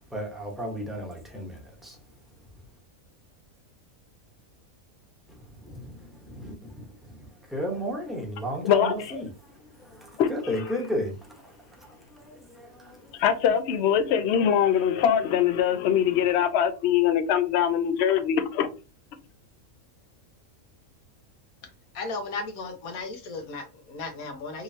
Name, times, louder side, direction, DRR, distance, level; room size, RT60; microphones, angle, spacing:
voice 1, 0.1-2.0 5.6-9.3 9.8-11.5 11.8-13.2, equal, ahead, 0.8 m, -34 dB
voice 2, 8.6-9.2 10.2-10.3 13.2-18.7, left 9 dB, 60° left, 0.8 m, -23 dB
voice 3, 21.9-24.6, left 3 dB, 90° left, 1.4 m, -35 dB
3.7 x 3.1 x 2.8 m
omnidirectional pair, 1.5 m